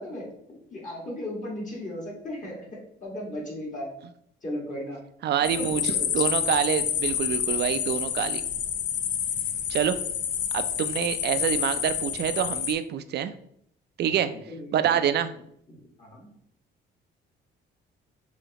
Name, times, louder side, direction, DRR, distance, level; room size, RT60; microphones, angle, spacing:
voice 1, 0.0-3.9 4.4-5.0 5.4-6.1 14.1-15.0 15.8-16.3, left 1 dB, 40° left, -4 dB, 1.6 m, -36 dB
voice 2, 5.2-8.4 9.7-10.0 10.5-13.3 14.0-14.3 14.7-15.3, right 9 dB, 55° right, 11 dB, 0.4 m, -26 dB
sound 1, 5.4-12.7, left 9 dB, 70° left, 0.4 m, -28 dB
5.0 x 2.8 x 2.8 m, 0.69 s
cardioid pair, 90°, 20 cm